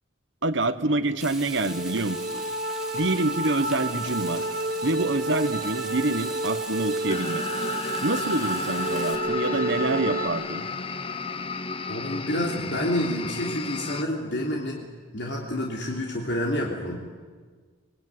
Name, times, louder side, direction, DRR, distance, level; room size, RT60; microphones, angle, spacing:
voice 1, 0.4-2.4 2.9-4.4 4.8-7.5 8.0-10.7, right 2 dB, 65° right, 10 dB, 1.3 m, -26 dB
Frying (food), 1.2-9.1, right 2 dB, 5° right, 2.2 m, -41 dB
sound 1, 1.4-10.3, right 2 dB, 45° right, 2.8 m, -30 dB
sound 2, 7.1-14.0, left 4 dB, 30° left, 0.8 m, -32 dB
voice 2, 11.9-14.9 15.1-17.0, left 1 dB, 60° left, -1 dB, 3.2 m, -28 dB
24.5 x 22.0 x 9.6 m, 1.5 s
head